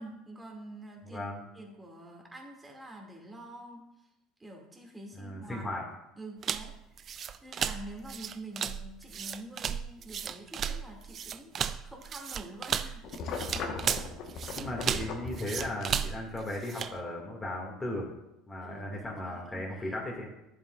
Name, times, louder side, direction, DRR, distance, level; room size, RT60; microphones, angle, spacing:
voice 1, 0.0-1.3 1.5-3.9 4.4-5.8 6.2-13.0 18.6-20.0, right 1 dB, 15° right, 0 dB, 2.3 m, -47 dB
voice 2, 1.0-1.4 5.2-5.8 13.7-13.8 14.6-18.1 18.5-20.3, left 1 dB, 15° left, -2 dB, 2.1 m, -36 dB
sound 1, 6.4-17.0, right 8 dB, 40° right, 0.4 m, -35 dB
sound 2, 13.0-15.8, left 4 dB, 55° left, 1.2 m, -38 dB
11.0 x 7.3 x 2.5 m, 0.89 s
hypercardioid pair, 70°, 0 cm